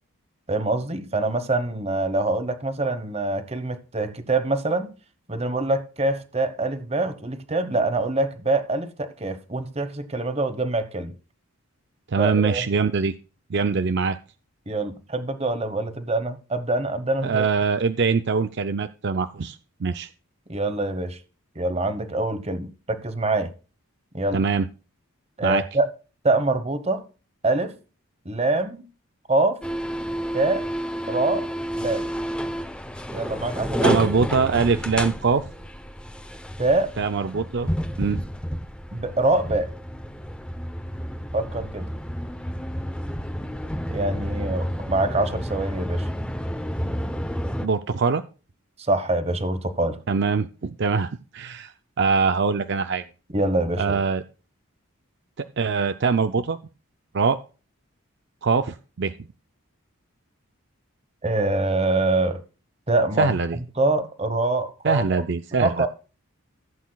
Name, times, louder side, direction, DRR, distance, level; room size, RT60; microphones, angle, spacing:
voice 1, 0.5-4.9 5.3-11.1 12.2-12.6 14.7-17.5 20.5-21.2 21.6-23.5 24.1-24.4 25.4-25.9 26.2-27.0 27.4-27.8 28.2-28.8 29.3-29.6 30.3-30.6 31.1-31.5 31.8-32.0 33.1-34.0 36.6-36.9 38.9-39.7 41.3-41.9 43.9-46.1 48.8-50.0 53.3-54.0 61.2-62.4 62.9-65.2 65.5-65.9, right 2 dB, 30° right, 1.0 m, -24 dB
voice 2, 12.1-13.1 13.5-14.2 17.2-20.1 24.3-24.6 25.4-25.6 33.8-35.4 37.0-37.7 38.0-38.2 47.6-48.2 50.1-51.7 52.0-53.0 53.8-54.2 55.4-56.6 57.1-57.4 58.4-59.1 63.2-63.6 64.8-65.9, right 5 dB, 50° right, 0.5 m, -23 dB
sound 1, 29.6-47.7, equal, 5° left, 0.7 m, -30 dB
15.5 x 8.3 x 2.3 m
head